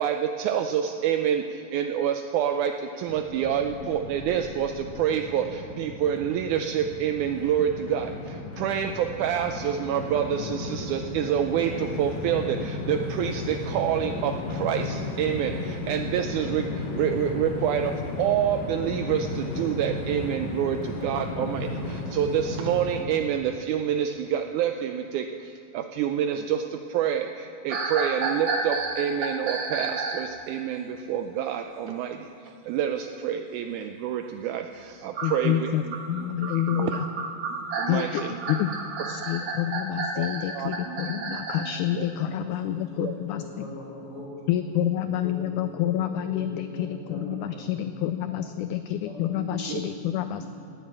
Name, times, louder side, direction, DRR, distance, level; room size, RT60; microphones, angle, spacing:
voice 1, 0.0-36.3 36.7-36.9 37.5-38.4 40.2-41.7 42.0-42.1 42.7-43.2 49.7-49.8, right 9 dB, 85° right, 6 dB, 1.8 m, -28 dB
Train, 3.1-23.0, left 2 dB, 65° left, 3.3 m, -34 dB
sound 1, 27.7-30.3 35.1-41.7, right 3 dB, 55° right, 1.5 m, -31 dB
voice 2, 35.2-35.8 36.1-37.1 37.9-38.7 39.1-43.7 44.5-50.4, left 11 dB, 85° left, 10 dB, 1.7 m, -28 dB
voice 3, 41.3-44.3 45.0-48.6 49.0-50.5, left 1 dB, 40° left, -5 dB, 5.3 m, -42 dB
18.0 x 7.5 x 8.6 m, 2.7 s
omnidirectional pair, 4.1 m